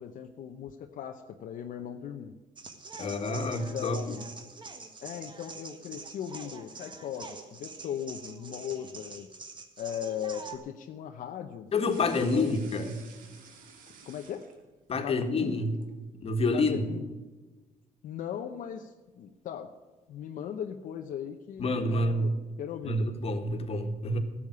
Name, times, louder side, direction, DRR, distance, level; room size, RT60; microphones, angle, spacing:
voice 1, 0.0-2.3 3.0-4.3 5.0-9.3 9.8-11.7 12.2-12.7 14.0-14.5 15.0-15.7 16.5-17.1 18.0-19.7 20.1-23.0, left 9 dB, 75° left, 4 dB, 0.8 m, -38 dB
sound 1, 2.6-10.6, right 4 dB, 35° right, 1.6 m, -45 dB
voice 2, 3.0-4.1 11.7-13.0 14.9-15.8 16.2-16.8 21.6-22.3 22.8-24.2, left 2 dB, 45° left, 6 dB, 1.7 m, -28 dB
sound 2, 11.7-14.9 15.3-16.0, right 5 dB, 85° right, 1.9 m, -53 dB
12.5 x 7.3 x 9.5 m, 1.2 s
cardioid pair, 95°, 14 cm